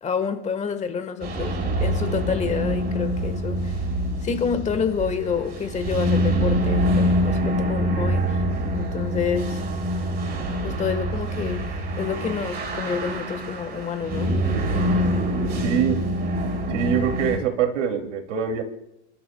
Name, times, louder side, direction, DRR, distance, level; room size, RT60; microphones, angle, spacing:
voice 1, 0.0-3.8 4.2-8.4 8.7-9.6 10.6-11.6 12.0-14.4, left 6 dB, 20° left, 9 dB, 1.3 m, -28 dB
sound 1, 1.2-17.4, equal, 25° right, 3.0 m, -25 dB
voice 2, 15.6-16.0 16.7-18.6, right 8 dB, 80° right, 5 dB, 2.6 m, -24 dB
28.0 x 12.5 x 2.2 m, 0.84 s
supercardioid pair, 140°, 36 cm